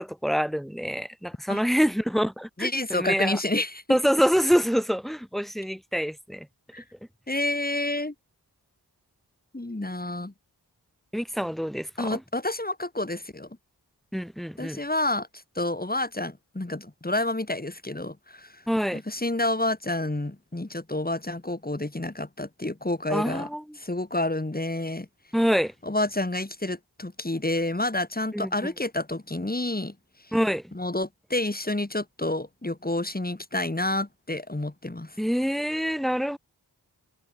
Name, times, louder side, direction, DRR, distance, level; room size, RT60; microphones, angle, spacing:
voice 1, 0.0-3.4 3.9-6.5 11.1-12.2 14.1-14.8 18.7-19.0 23.1-23.6 25.3-25.7 28.3-28.7 30.3-30.6 35.2-36.4, equal, ahead, 3.7 m, -26 dB
voice 2, 2.6-3.8 6.7-6.8 7.3-8.1 9.5-10.3 12.0-13.5 14.6-15.3 15.6-18.6 18.9-23.5 23.8-25.1 25.8-29.9 30.7-35.2, left 2 dB, 20° left, 2.7 m, -29 dB
wide cardioid pair, 45°, 40 cm